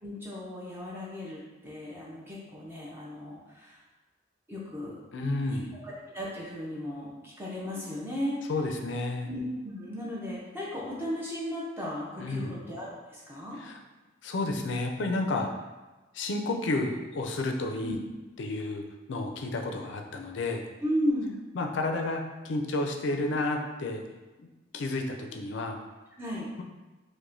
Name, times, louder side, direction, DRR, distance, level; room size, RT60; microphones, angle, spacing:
voice 1, 0.0-3.8 4.5-4.9 5.5-8.4 9.2-13.6 17.8-18.0 20.8-21.4 26.2-26.5, equal, 10° right, -6 dB, 0.5 m, -35 dB
voice 2, 5.1-5.8 8.5-9.3 12.2-12.6 13.6-13.8 14.2-15.6 16.1-18.0 18.4-20.7 21.6-24.0 24.4-24.5 24.7-25.8, left 2 dB, 65° left, 3 dB, 0.4 m, -31 dB
4.7 x 2.1 x 2.6 m, 1.2 s
head